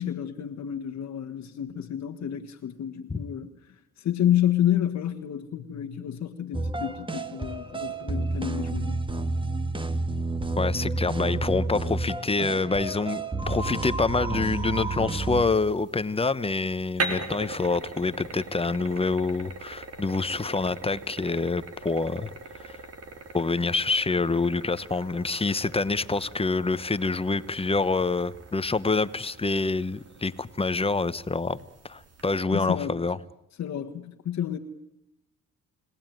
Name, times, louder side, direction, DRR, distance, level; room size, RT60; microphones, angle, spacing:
voice 1, 0.0-9.0 32.5-33.0 33.6-34.6, left 10 dB, 60° left, 4 dB, 1.5 m, -29 dB
sound 1, 6.5-15.4, right 2 dB, 15° right, 1.7 m, -30 dB
voice 2, 10.6-22.3 22.6-22.8 23.3-31.6 31.8-33.2, left 3 dB, 20° left, 15 dB, 1.1 m, -26 dB
sound 2, 15.5-32.4, right 3 dB, 55° right, 4.1 m, -41 dB
30.0 x 18.5 x 9.3 m, 0.85 s
cardioid pair, 90°, 30 cm